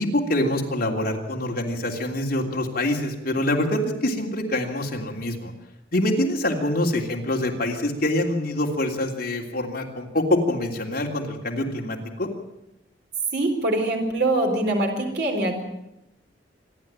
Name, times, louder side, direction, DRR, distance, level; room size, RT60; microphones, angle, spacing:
voice 1, 0.0-5.5 5.9-12.3, left 1 dB, 55° left, 0 dB, 3.2 m, -25 dB
voice 2, 13.3-15.6, right 2 dB, 65° right, 2 dB, 4.2 m, -23 dB
27.0 x 11.5 x 8.9 m, 0.88 s
head